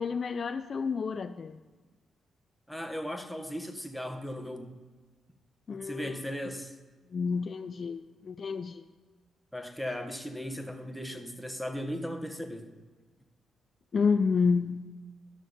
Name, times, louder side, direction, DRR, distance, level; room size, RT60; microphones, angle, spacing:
voice 1, 0.0-1.6 5.7-6.1 7.1-8.8 13.9-14.8, left 5 dB, 50° left, 9 dB, 0.4 m, -29 dB
voice 2, 2.7-4.8 5.7-6.7 9.5-12.7, equal, ahead, 4 dB, 1.5 m, -37 dB
12.5 x 6.3 x 5.3 m, 1.3 s
hypercardioid pair, 45°, 0 cm